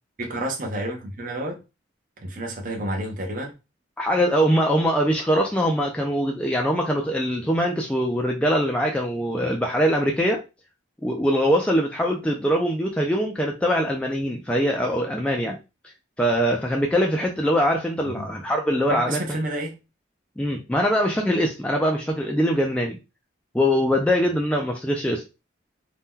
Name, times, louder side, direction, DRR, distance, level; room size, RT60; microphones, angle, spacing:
voice 1, 0.2-1.6 2.2-3.5 18.0-18.4 18.9-19.7, right 1 dB, 45° right, 0.7 m, -30 dB
voice 2, 4.0-10.4 11.0-15.6 16.2-19.2 20.4-23.0 23.5-25.2, equal, 5° left, 0.3 m, -22 dB
2.7 x 2.2 x 3.5 m
head